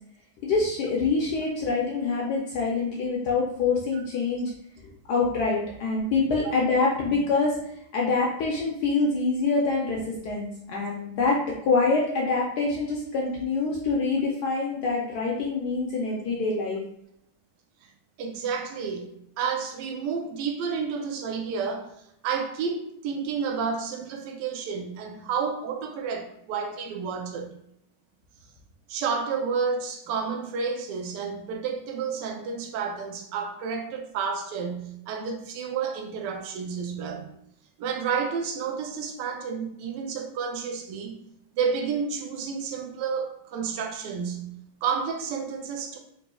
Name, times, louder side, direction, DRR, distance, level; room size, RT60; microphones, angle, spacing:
voice 1, 0.4-4.5 5.1-7.6 7.9-16.8, left 3 dB, 80° left, -3 dB, 0.9 m, -25 dB
voice 2, 18.2-21.9 22.2-27.5 28.9-37.3 37.8-41.2 41.5-46.0, right 6 dB, 75° right, 3 dB, 1.0 m, -30 dB
4.1 x 2.9 x 2.3 m, 0.74 s
omnidirectional pair, 2.4 m